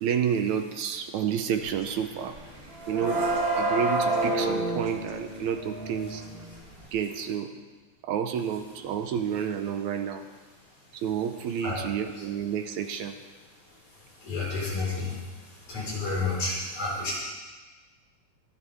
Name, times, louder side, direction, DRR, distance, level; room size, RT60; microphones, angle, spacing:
voice 1, 0.0-2.4 2.9-3.3 3.5-6.2 6.9-7.6 8.0-10.2 10.9-13.2, right 8 dB, 75° right, 7 dB, 1.9 m, -30 dB
sound 1, 1.7-1.9 2.2-6.8, right 2 dB, 40° right, 0.8 m, -28 dB
voice 2, 14.2-15.2 15.7-17.2, left 3 dB, 55° left, -6 dB, 6.4 m, -30 dB
24.5 x 11.0 x 3.5 m, 1.3 s
omnidirectional pair, 4.0 m